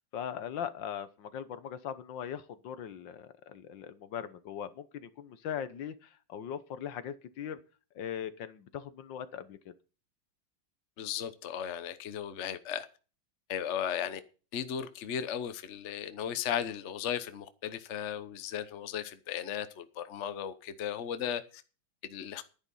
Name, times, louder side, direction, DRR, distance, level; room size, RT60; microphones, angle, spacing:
voice 1, 0.1-7.6 7.9-9.7, left 9 dB, 75° left, 1.6 m, -40 dB
voice 2, 11.0-12.9 13.5-14.2 14.5-21.6 22.0-22.4, left 9 dB, 45° left, 1.0 m, -36 dB
11.0 x 10.5 x 5.5 m
omnidirectional pair, 2.1 m